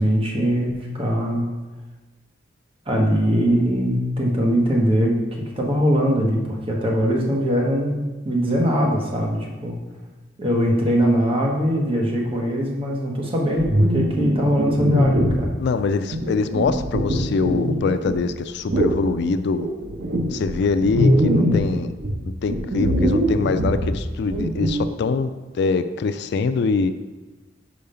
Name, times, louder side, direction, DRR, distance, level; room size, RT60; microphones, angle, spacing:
voice 1, 0.0-1.5 2.9-9.8 10.4-15.5, equal, 30° right, -1 dB, 1.1 m, -21 dB
sound 1, 13.6-15.5 16.1-18.2 18.7-19.0 19.6-21.7 22.0-24.9, equal, 60° right, 0.9 m, -22 dB
voice 2, 15.6-19.7 20.3-21.9 22.4-26.9, left 4 dB, 60° left, 11 dB, 0.3 m, -23 dB
5.2 x 4.7 x 5.6 m, 1.2 s
head